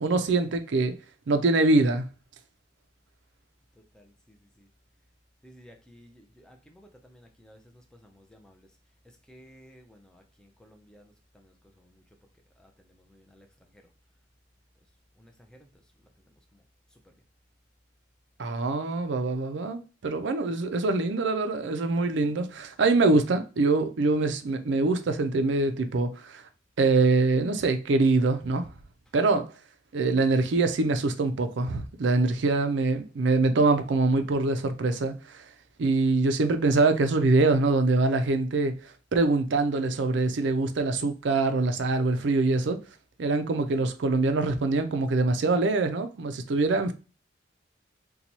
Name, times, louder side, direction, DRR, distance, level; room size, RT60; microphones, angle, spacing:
voice 1, 0.0-0.9 1.3-2.0 18.4-26.4 26.8-28.7 29.1-29.5 29.9-35.4 35.8-38.7 39.1-42.8 43.2-46.9, right 3 dB, 65° right, 0.4 m, -24 dB
voice 2, 5.4-7.6 8.0-8.6 9.3-11.1 11.4-11.5 12.6-12.7 13.1-13.5 15.2-15.3 15.6-15.7, equal, 5° left, 0.5 m, -54 dB
2.9 x 2.2 x 4.0 m
head